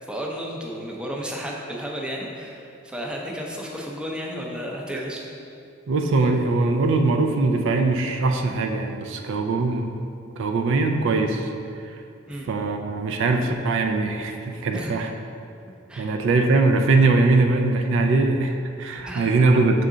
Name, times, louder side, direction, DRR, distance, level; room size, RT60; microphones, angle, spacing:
voice 1, 0.0-5.2 12.3-12.5 14.7-14.9 15.9-16.1 19.0-19.3, equal, 5° right, -2 dB, 0.5 m, -33 dB
voice 2, 5.9-10.1 10.4-11.5 11.9-12.0 12.5-15.1 16.0-19.9, right 3 dB, 60° right, 4 dB, 0.4 m, -21 dB
6.7 x 3.7 x 3.7 m, 2.5 s
head